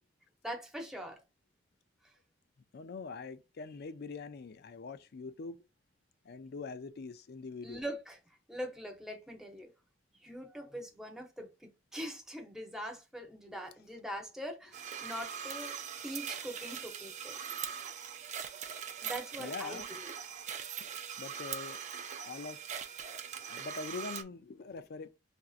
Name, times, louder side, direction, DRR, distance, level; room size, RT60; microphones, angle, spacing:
voice 1, 0.4-1.2 2.0-2.1 7.6-8.2 8.5-9.7 10.2-15.8 16.0-17.4 19.0-20.1, equal, 5° right, 0.8 m, -42 dB
voice 2, 2.7-5.6 6.2-7.8 13.5-13.7 19.4-19.9 21.2-21.8 22.2-22.6 23.5-25.1, left 4 dB, 55° left, 0.4 m, -43 dB
sound 1, 14.7-24.2, right 8 dB, 40° right, 0.5 m, -41 dB
5.8 x 2.6 x 2.4 m
head